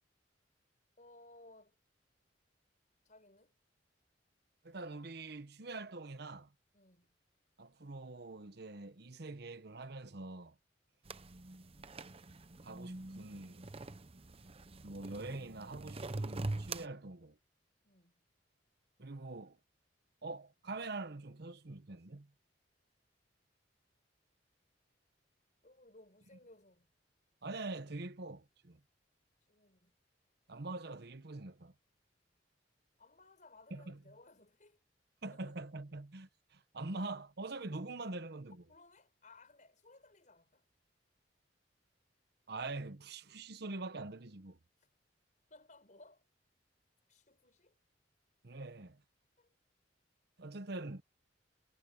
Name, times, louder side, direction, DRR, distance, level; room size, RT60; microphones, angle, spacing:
voice 1, 1.0-1.8 3.0-3.6 6.7-7.1 17.8-18.2 25.6-26.9 29.5-29.9 33.0-34.8 35.3-35.4 38.7-40.7 44.8-44.9 45.5-46.3 47.1-47.8 49.4-49.6, left 2 dB, 45° left, 5.7 m, -61 dB
voice 2, 4.6-6.5 7.6-10.5 12.6-13.7 14.8-17.4 19.0-19.6 20.2-22.3 27.4-28.8 30.5-31.7 33.7-34.0 35.2-38.6 42.5-44.6 48.4-49.0 50.4-51.0, right 2 dB, 60° right, 1.0 m, -44 dB
sound 1, 11.0-16.9, right 2 dB, 30° right, 0.8 m, -44 dB
head